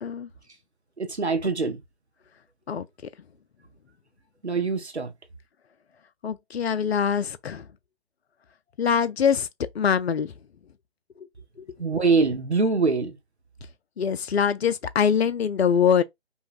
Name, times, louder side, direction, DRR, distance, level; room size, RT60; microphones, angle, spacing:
voice 1, 1.0-1.8 4.4-5.1 11.8-13.1, right 4 dB, 90° right, 0.9 m, -23 dB
voice 2, 6.2-7.6 8.8-9.5 9.7-10.3 14.0-16.0, left 7 dB, 75° left, 0.5 m, -23 dB
5.4 x 2.3 x 2.5 m
figure-of-eight pair, 145°, 32 cm